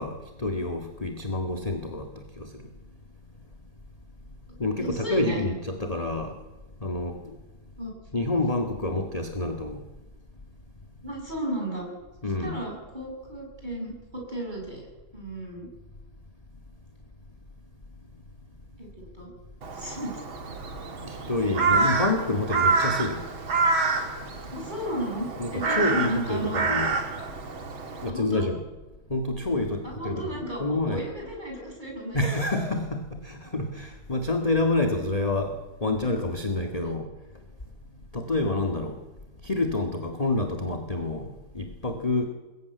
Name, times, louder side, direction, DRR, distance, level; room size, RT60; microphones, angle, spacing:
voice 1, 0.0-2.5 4.6-6.3 6.8-7.2 8.1-9.8 12.2-12.6 21.0-23.3 25.4-27.0 28.0-28.6 29.1-31.0 32.1-37.1 38.1-39.0 39.4-42.3, left 2 dB, 20° left, 5 dB, 1.7 m, -28 dB
voice 2, 4.5-5.4 7.8-7.9 11.0-11.9 12.4-14.8 15.1-15.7 18.8-19.3 19.7-20.2 21.4-21.8 24.5-26.8 28.1-28.5 29.8-32.2, right 1 dB, 20° right, 0 dB, 8.0 m, -34 dB
Crow, 19.6-28.1, right 4 dB, 85° right, 3.3 m, -27 dB
26.0 x 21.5 x 9.4 m, 1.2 s
omnidirectional pair, 2.1 m